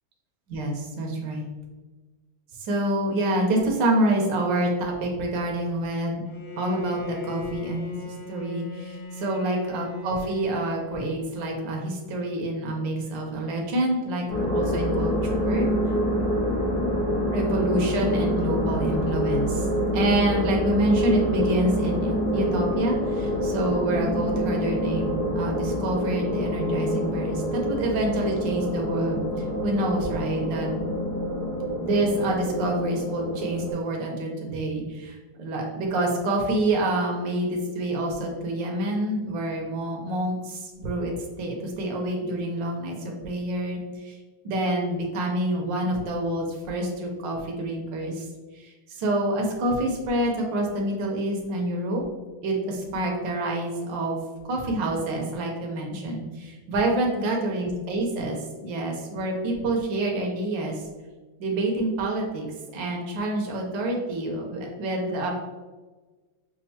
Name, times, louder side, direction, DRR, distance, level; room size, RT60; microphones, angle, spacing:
voice 1, 0.5-1.5 2.6-6.2 6.6-15.7 17.3-19.7 19.9-29.2 29.6-30.7 31.8-44.2 44.4-48.3 48.5-52.0 52.4-54.2 54.4-60.8 61.4-62.5 62.7-65.3, right 1 dB, 70° right, 0 dB, 1.5 m, -27 dB
Bowed string instrument, 6.2-11.7, left 4 dB, 75° left, 0.4 m, -39 dB
sound 1, 14.3-33.7, equal, 60° left, 1.9 m, -26 dB
6.3 x 2.5 x 2.8 m, 1.3 s
omnidirectional pair, 2.2 m